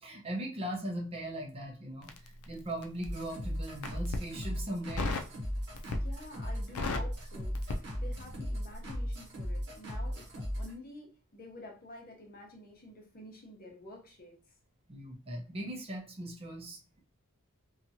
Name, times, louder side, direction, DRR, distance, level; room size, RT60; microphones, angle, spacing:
voice 1, 0.0-2.1 2.5-5.1 14.9-17.0, right 1 dB, 25° right, 0 dB, 0.6 m, -39 dB
Crackle, 2.0-3.2 3.7-4.3 5.0-5.4 5.7-6.2 6.5-8.4 8.7-8.9, left 3 dB, 85° left, 0.4 m, -36 dB
sound 1, 3.0-10.7, equal, 50° right, 0.9 m, -37 dB
voice 2, 5.9-14.4, left 1 dB, 40° left, 0 dB, 0.8 m, -49 dB
2.8 x 2.3 x 2.7 m, 0.36 s
head